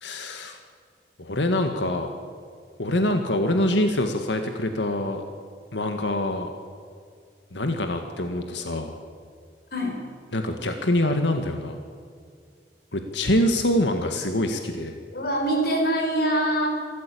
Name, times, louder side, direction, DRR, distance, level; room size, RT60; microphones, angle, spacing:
voice 1, 0.0-0.6 1.2-2.1 2.8-5.2 5.7-6.5 7.5-8.9 10.3-11.8 12.9-15.0, left 1 dB, 90° left, 5 dB, 1.9 m, -25 dB
voice 2, 15.1-16.7, right 1 dB, 60° left, 1 dB, 6.5 m, -24 dB
26.5 x 14.0 x 8.7 m, 2.2 s
head